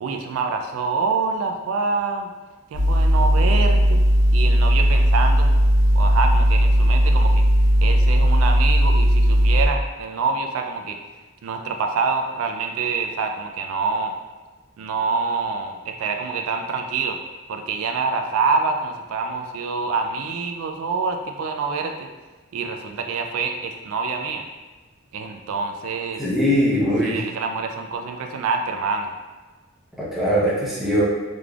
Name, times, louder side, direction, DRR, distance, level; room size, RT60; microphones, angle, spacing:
voice 1, 0.0-2.3 2.7-4.0 4.3-5.5 5.9-7.4 7.8-11.0 11.4-14.1 14.8-17.2 17.5-22.1 22.5-24.4 25.1-26.2 27.0-29.1, right 4 dB, 75° right, 4 dB, 0.3 m, -26 dB
sound 1, 2.7-9.7, equal, 60° left, 0.8 m, -17 dB
voice 2, 26.2-27.2 30.0-31.0, equal, ahead, -8 dB, 0.7 m, -21 dB
3.8 x 3.2 x 2.3 m, 1.3 s
head